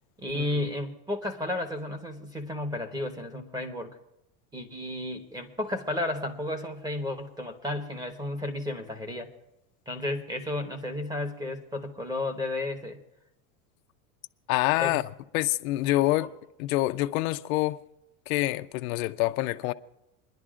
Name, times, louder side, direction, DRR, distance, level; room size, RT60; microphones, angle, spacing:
voice 1, 0.2-4.0 4.5-9.3 9.9-13.0 14.8-15.0 16.2-16.3, left 1 dB, 10° right, 1.1 m, -33 dB
voice 2, 14.5-15.0 15.3-16.3 16.6-17.8 18.3-19.7, left 18 dB, 75° left, 0.6 m, -26 dB
29.0 x 10.5 x 2.5 m
supercardioid pair, 135°, 42 cm